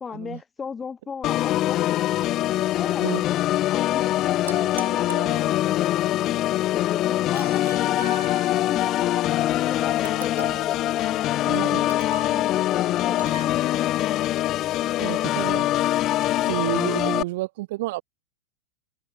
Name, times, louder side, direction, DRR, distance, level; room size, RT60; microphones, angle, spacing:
voice 1, 0.0-2.0 2.5-3.4 3.7-5.0 5.4-8.2 8.7-11.3 11.6-12.0 12.3-13.9, left 6 dB, 15° left, 2.1 m, -37 dB
Organ, 1.2-17.2, left 14 dB, 35° left, 0.4 m, -23 dB
sound 1, 4.5-5.9 7.3-8.8 10.0-10.8 11.9-12.4 13.2-13.5, right 4 dB, 75° right, 1.3 m, -40 dB
voice 2, 11.4-11.8 15.0-15.7 16.5-18.0, right 19 dB, 50° right, 0.5 m, -30 dB
figure-of-eight pair, 90°, 0 cm